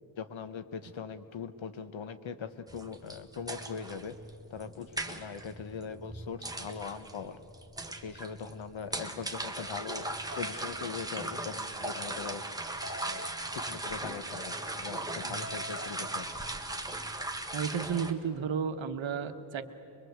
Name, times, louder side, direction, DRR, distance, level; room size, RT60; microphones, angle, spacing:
voice 1, 0.2-4.2 4.5-7.4 8.0-10.1 10.3-12.4 13.1-13.3 13.5-16.3, left 6 dB, 80° left, 11 dB, 1.2 m, -41 dB
sound 1, 2.7-18.1, right 2 dB, 10° right, 1.4 m, -38 dB
sound 2, 10.3-10.6 12.8-13.4 15.4-16.0, left 1 dB, 25° right, 1.2 m, -43 dB
voice 2, 15.2-15.5 17.5-19.6, right 6 dB, 80° right, 8 dB, 1.3 m, -33 dB
24.0 x 21.5 x 8.1 m, 3.0 s
wide cardioid pair, 100°, 46 cm